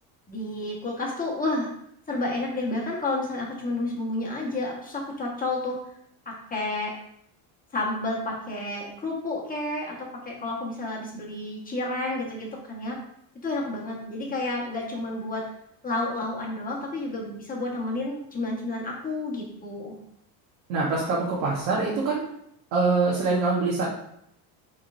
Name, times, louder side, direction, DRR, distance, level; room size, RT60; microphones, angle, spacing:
voice 1, 0.3-1.7 2.1-5.8 6.2-6.9 7.7-13.0 13.4-15.4 15.8-20.0, left 2 dB, 15° left, -3 dB, 1.4 m, -30 dB
voice 2, 20.7-22.2 22.7-23.8, right 3 dB, 80° right, -5 dB, 1.2 m, -24 dB
4.2 x 3.7 x 2.6 m, 0.73 s
supercardioid pair, 95°, 50 cm